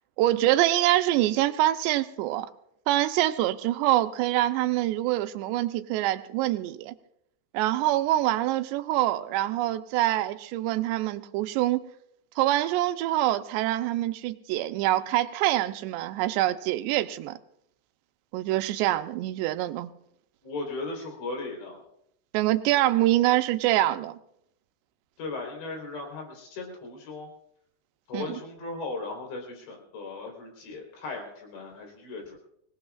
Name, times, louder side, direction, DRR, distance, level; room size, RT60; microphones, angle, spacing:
voice 1, 0.2-2.5 2.9-6.9 7.5-11.9 12.4-17.4 18.3-19.9 22.3-24.2 28.1-28.4, right 15 dB, 85° right, 9 dB, 2.9 m, -25 dB
voice 2, 20.4-21.8 25.2-27.3 28.1-32.4, left 3 dB, 80° left, 1 dB, 6.2 m, -37 dB
25.0 x 19.0 x 2.4 m, 0.74 s
omnidirectional pair, 5.0 m